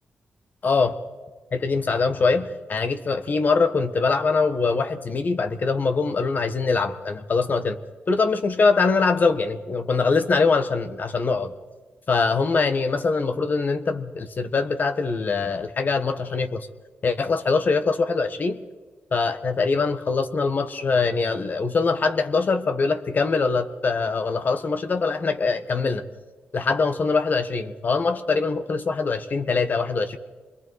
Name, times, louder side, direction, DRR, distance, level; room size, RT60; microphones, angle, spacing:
voice 1, 0.6-0.9 1.5-7.8 8.1-11.5 12.1-16.7 17.0-18.6 19.1-26.0 26.5-30.2, left 4 dB, 50° left, 10 dB, 1.4 m, -23 dB
26.0 x 22.0 x 4.7 m, 1.3 s
cardioid pair, 90°, 4 cm